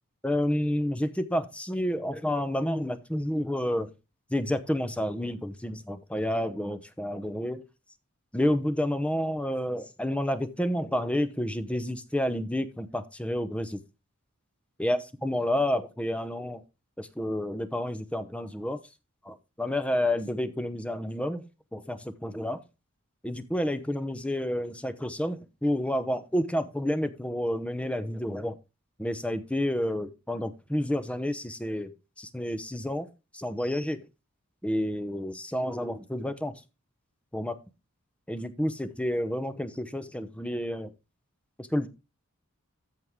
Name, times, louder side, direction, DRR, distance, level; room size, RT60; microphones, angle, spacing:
voice 1, 0.2-3.9 4.3-7.6 8.3-13.8 14.8-16.6 17.0-18.8 19.2-21.4 21.7-22.6 23.2-28.6 29.0-31.9 32.2-33.1 33.3-34.0 34.6-36.5 37.3-37.5 38.3-40.9 41.6-41.9, left 1 dB, 5° left, 12 dB, 0.7 m, -30 dB
14.0 x 4.8 x 3.6 m, 0.27 s
head